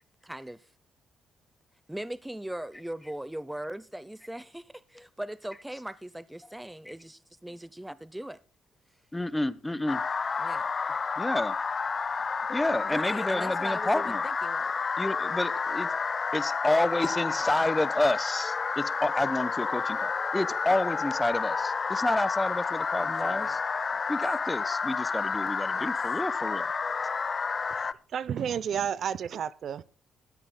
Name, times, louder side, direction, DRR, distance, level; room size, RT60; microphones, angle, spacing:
voice 1, 0.2-0.7 1.9-8.4 8.9-9.0 10.4-11.0 12.8-14.7 17.4-17.5 23.0-23.6 23.9-24.0 25.7-25.9, right 1 dB, 5° right, 0.7 m, -40 dB
voice 2, 9.1-10.0 11.2-11.5 12.5-14.2 15.0-15.9 16.3-23.6 24.1-26.7, left 1 dB, 10° left, 1.0 m, -29 dB
sound 1, 9.9-27.9, left 5 dB, 40° left, 0.7 m, -30 dB
voice 3, 27.7-29.8, right 8 dB, 60° right, 0.6 m, -32 dB
20.0 x 14.0 x 2.3 m
cardioid pair, 90°, 0 cm